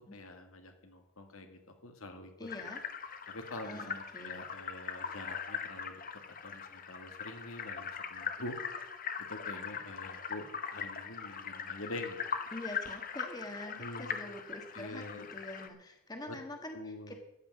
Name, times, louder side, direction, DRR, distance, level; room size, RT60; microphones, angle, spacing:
voice 1, 0.1-2.3 3.3-8.5 9.3-10.5 10.7-12.3 13.8-14.3 14.7-15.3 16.3-16.4 16.7-17.1, left 2 dB, 80° left, 5 dB, 2.0 m, -45 dB
voice 2, 2.4-2.8 3.6-4.4 12.5-17.2, left 1 dB, 20° left, 4 dB, 1.4 m, -45 dB
sound 1, 2.5-15.7, left 7 dB, 40° left, 1.0 m, -41 dB
14.0 x 5.9 x 9.0 m, 0.84 s
head